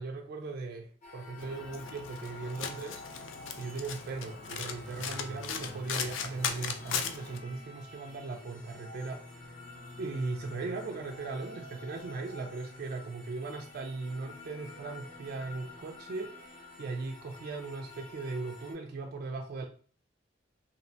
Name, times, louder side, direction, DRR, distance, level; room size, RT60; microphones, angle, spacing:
voice 1, 0.0-3.0 3.6-9.6 10.0-19.6, right 3 dB, 55° right, 1 dB, 0.3 m, -38 dB
sound 1, 1.0-18.7, left 2 dB, 45° left, 0.8 m, -49 dB
Domestic sounds home sounds, 1.4-7.4, left 7 dB, 80° left, 0.3 m, -38 dB
2.7 x 2.1 x 2.6 m, 0.43 s
head